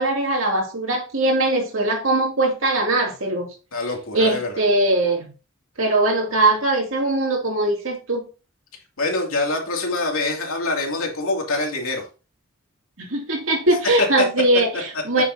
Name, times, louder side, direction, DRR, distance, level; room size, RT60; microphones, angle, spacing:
voice 1, 0.0-3.5 4.1-5.3 5.8-8.2 13.0-15.2, right 2 dB, 75° right, 2.6 m, -21 dB
voice 2, 3.7-4.5 9.0-12.1 14.0-14.2, left 2 dB, 85° left, 2.6 m, -24 dB
9.3 x 6.6 x 2.8 m
head